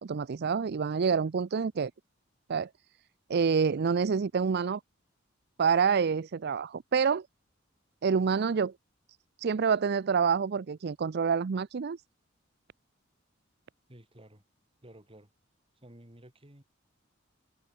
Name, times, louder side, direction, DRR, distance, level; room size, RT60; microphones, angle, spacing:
voice 1, 0.0-1.9 2.5-2.7 3.3-4.8 5.6-7.3 8.0-8.7 9.4-12.0, right 6 dB, 55° right, 0.5 m, -27 dB
voice 2, 13.9-14.4 14.8-15.3 15.8-16.6, right 1 dB, 30° right, 3.6 m, -53 dB
head